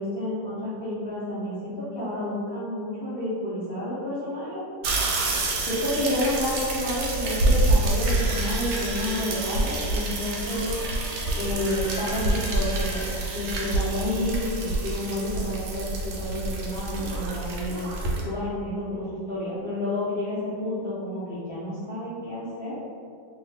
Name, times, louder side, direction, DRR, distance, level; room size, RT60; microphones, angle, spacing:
voice 1, 0.0-4.6 5.8-10.7 11.3-17.9 18.2-22.7, left 1 dB, 75° left, -12 dB, 0.5 m, -30 dB
sound 1, 4.8-18.2, right 2 dB, 75° right, 1.1 m, -27 dB
sound 2, 8.0-9.8 10.5-13.1, left 1 dB, 10° left, 0.7 m, -41 dB
2.7 x 2.6 x 3.2 m, 2.3 s
omnidirectional pair, 2.0 m